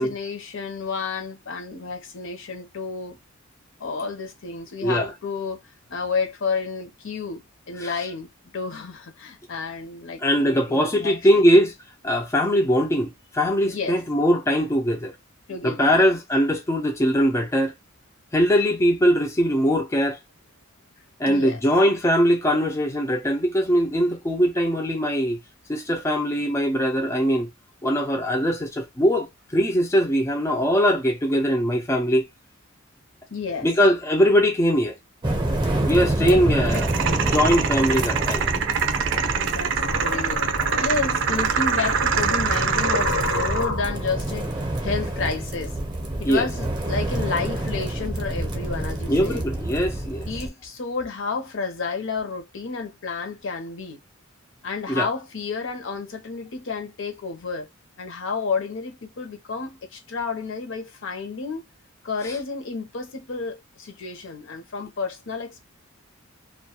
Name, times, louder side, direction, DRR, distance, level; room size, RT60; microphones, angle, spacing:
voice 1, 0.0-3.2 3.8-5.6 5.9-11.5 13.6-14.0 15.5-16.1 21.2-21.6 33.3-33.7 36.2-37.2 39.4-45.7 46.2-49.4 50.3-54.0 54.6-57.7 58.0-61.6 62.0-65.7, left 4 dB, 65° left, 0.7 m, -31 dB
voice 2, 10.2-11.7 12.0-15.1 15.6-17.7 18.3-20.2 21.2-25.4 25.7-27.5 27.8-29.3 29.5-32.3 33.6-35.0 35.8-36.9 37.3-38.5 46.2-46.5 49.1-50.3 54.9-55.1, equal, 15° left, 0.3 m, -21 dB
sound 1, 35.2-50.5, right 1 dB, 20° right, 0.6 m, -28 dB
sound 2, 36.7-43.7, right 6 dB, 60° right, 0.4 m, -25 dB
sound 3, 39.1-44.2, left 3 dB, 90° left, 0.9 m, -31 dB
2.2 x 2.1 x 2.8 m
head